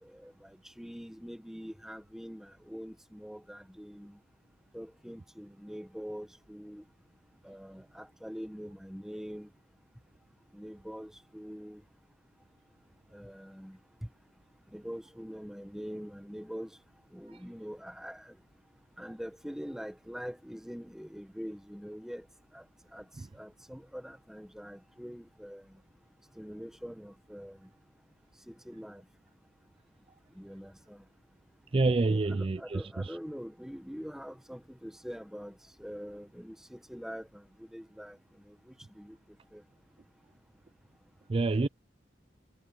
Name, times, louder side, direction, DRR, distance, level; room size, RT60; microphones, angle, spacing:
voice 1, 0.0-4.2 4.7-6.8 7.4-9.5 10.5-11.8 13.1-14.1 14.7-16.7 17.1-18.4 19.0-22.2 22.5-22.6 22.9-23.0 23.3-25.6 26.4-27.6 28.5-29.0 30.3-31.0 32.0-38.2 38.4-39.2 39.5-39.6, equal, 5° right, 1.4 m, -44 dB
voice 2, 31.7-33.2 41.3-41.7, right 3 dB, 30° right, 0.4 m, -27 dB
head